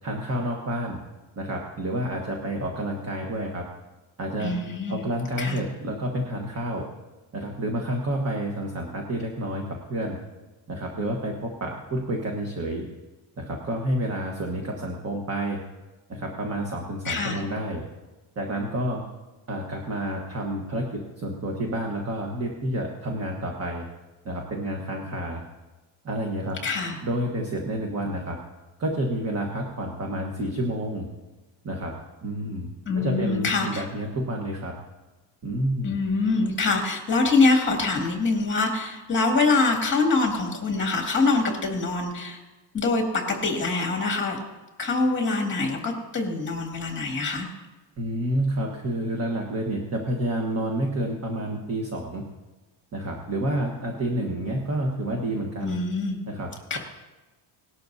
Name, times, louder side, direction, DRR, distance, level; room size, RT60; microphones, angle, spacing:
voice 1, 0.0-1.0 1.4-3.7 4.2-4.5 4.9-6.9 7.3-9.6 9.9-10.2 10.7-12.8 13.4-15.6 16.1-17.8 18.4-19.0 19.5-23.9 24.2-25.4 26.0-26.6 27.0-28.4 28.8-31.1 31.6-31.9 32.2-32.7 32.9-34.7 35.4-36.0 48.0-52.2 52.9-55.8 56.3-56.8, right 1 dB, 30° right, 0 dB, 1.3 m, -29 dB
voice 2, 4.4-5.0 5.4-5.6 17.1-17.4 26.6-27.0 32.9-33.8 35.8-42.4 42.7-44.4 44.8-47.5 55.6-56.2 56.7-56.8, left 3 dB, 25° left, 1 dB, 2.2 m, -24 dB
19.0 x 12.0 x 2.7 m, 1.1 s
cardioid pair, 155°, 47 cm